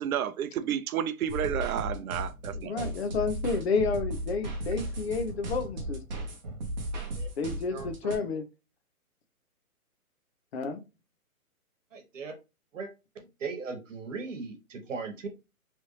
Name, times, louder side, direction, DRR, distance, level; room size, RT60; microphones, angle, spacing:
voice 1, 0.0-2.9, right 10 dB, 70° right, 0.5 m, -31 dB
sound 1, 1.3-8.2, right 1 dB, 30° right, 0.8 m, -35 dB
voice 2, 2.5-6.2 7.4-8.4 10.5-10.8, left 4 dB, 45° left, 0.7 m, -30 dB
voice 3, 11.9-12.3 12.7-12.9 13.1-15.3, right 4 dB, 55° right, 1.2 m, -38 dB
3.1 x 2.6 x 3.1 m
hypercardioid pair, 155°, 44 cm